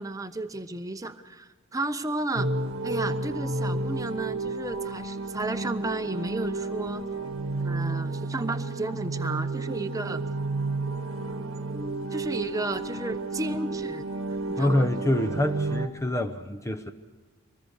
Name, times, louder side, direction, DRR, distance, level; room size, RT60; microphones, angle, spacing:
voice 1, 0.0-2.5 2.8-7.0 7.6-10.2 12.1-14.1 14.5-14.9, right 2 dB, 15° right, 8 dB, 0.9 m, -33 dB
sound 1, 2.4-15.9, right 2 dB, 75° right, 1.3 m, -31 dB
voice 2, 14.6-16.9, left 1 dB, 15° left, 7 dB, 0.8 m, -26 dB
24.5 x 19.5 x 6.5 m, 1.3 s
head